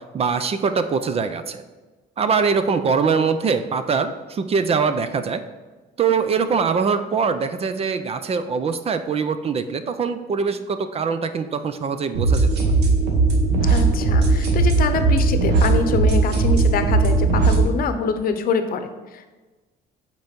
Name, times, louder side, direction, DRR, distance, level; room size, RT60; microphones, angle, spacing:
voice 1, 0.1-1.6 2.2-5.4 6.0-12.5, right 5 dB, 35° right, 10 dB, 0.6 m, -23 dB
sound 1, 12.1-17.6, right 3 dB, 90° right, 1.4 m, -18 dB
voice 2, 13.7-19.3, left 5 dB, 60° left, 9 dB, 0.8 m, -25 dB
8.2 x 4.5 x 5.3 m, 1.2 s
cardioid pair, 110°, 17 cm